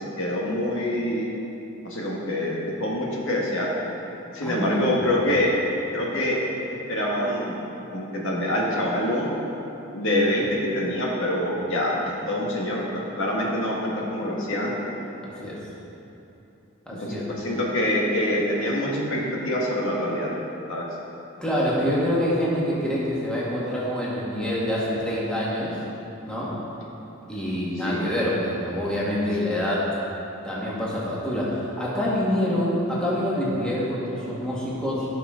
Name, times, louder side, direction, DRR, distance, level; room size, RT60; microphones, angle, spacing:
voice 1, 0.2-1.3 1.8-3.7 4.3-5.5 5.9-6.4 6.9-7.6 7.9-9.3 9.9-14.8 17.0-20.3 20.7-20.8 27.8-28.1, left 1 dB, 60° left, -4 dB, 1.6 m, -25 dB
voice 2, 4.4-5.1 15.4-15.6 16.9-17.2 21.4-25.8 26.2-26.6 27.3-29.9 30.4-35.1, equal, 5° left, -7 dB, 1.9 m, -26 dB
16.5 x 6.0 x 3.9 m, 2.9 s
head